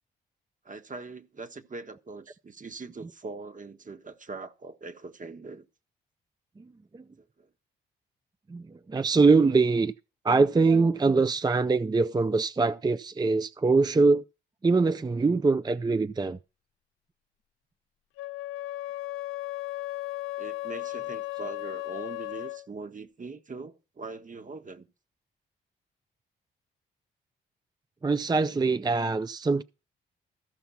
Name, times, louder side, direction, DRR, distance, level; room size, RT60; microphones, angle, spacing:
voice 1, 0.6-5.7 7.2-7.5 20.4-24.9, right 3 dB, 40° right, 1.5 m, -42 dB
voice 2, 8.5-9.9 10.2-14.2 14.6-16.4 28.0-29.6, right 3 dB, 20° right, 0.5 m, -23 dB
Wind instrument woodwind instrument, 18.2-22.7, left 17 dB, 85° left, 0.6 m, -35 dB
14.5 x 5.7 x 5.7 m
supercardioid pair, 50°, 21 cm